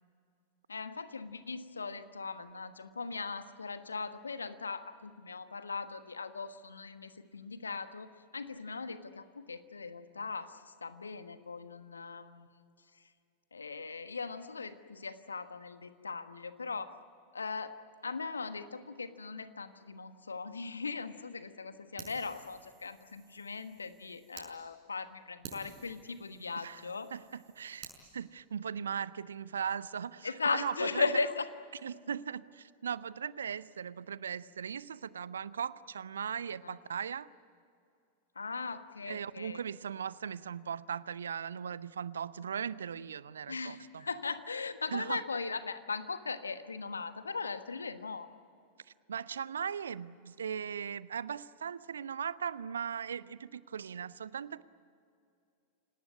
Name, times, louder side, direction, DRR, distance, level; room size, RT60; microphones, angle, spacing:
voice 1, 0.7-12.5 13.5-16.9 17.3-17.7 18.0-27.1 30.2-31.5 36.6-36.8 38.3-39.6 43.5-48.3, left 4 dB, 75° left, 11 dB, 1.3 m, -38 dB
Fire, 22.0-24.5 25.0-25.1 25.4-28.0, right 8 dB, 45° right, 6.1 m, -52 dB
voice 2, 27.1-27.9 28.1-31.0 31.8-37.3 39.1-44.0 44.9-45.2 49.1-54.6, right 7 dB, 70° right, 19 dB, 0.6 m, -38 dB
28.5 x 18.5 x 9.6 m, 2.5 s
figure-of-eight pair, 90°, 0 cm